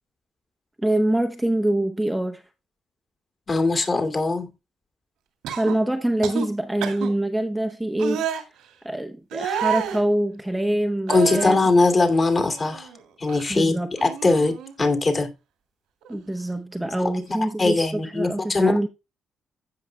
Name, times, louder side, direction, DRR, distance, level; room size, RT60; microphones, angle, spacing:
voice 1, 0.8-2.4 5.6-8.3 8.8-11.6 13.5-13.9 16.1-18.9, right 1 dB, 5° right, 0.9 m, -25 dB
voice 2, 3.5-4.5 11.1-12.9 13.2-15.3 17.4-18.7, left 3 dB, 35° left, 2.4 m, -21 dB
sound 1, 5.4-5.8 6.2-6.5 6.8-7.1 8.0-8.4 9.3-10.0 11.1-11.7 12.1-13.0 13.3-13.5 14.0-14.8 16.0-16.2, right 8 dB, 90° right, 2.3 m, -30 dB
15.5 x 5.7 x 2.2 m
cardioid pair, 90°, 0 cm